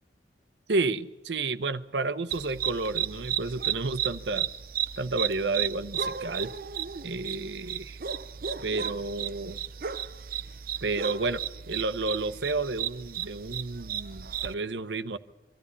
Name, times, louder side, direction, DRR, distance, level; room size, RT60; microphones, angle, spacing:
voice 1, 0.7-4.5 5.0-6.5 7.0-8.0 8.6-9.6 10.8-11.4 11.7-15.2, right 3 dB, 85° right, 0.9 m, -31 dB
sound 1, 2.3-14.5, right 9 dB, 55° right, 0.7 m, -34 dB
23.5 x 13.5 x 9.8 m
head